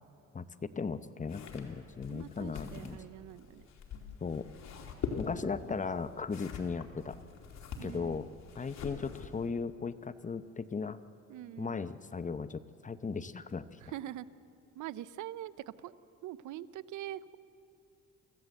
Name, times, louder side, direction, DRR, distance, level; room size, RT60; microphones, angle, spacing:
voice 1, 0.3-3.0 4.2-4.5 5.2-7.2 7.8-8.3 8.6-11.0 11.6-13.7, left 5 dB, 25° left, 13 dB, 0.8 m, -37 dB
sound 1, 1.2-9.5, left 5 dB, 65° left, 2.7 m, -44 dB
voice 2, 2.1-3.7 7.8-8.3 11.3-11.8 13.8-14.3 14.7-15.9 16.2-17.4, right 13 dB, 80° right, 17 dB, 0.6 m, -44 dB
24.5 x 15.5 x 7.8 m, 2.7 s
cardioid pair, 90°, 30 cm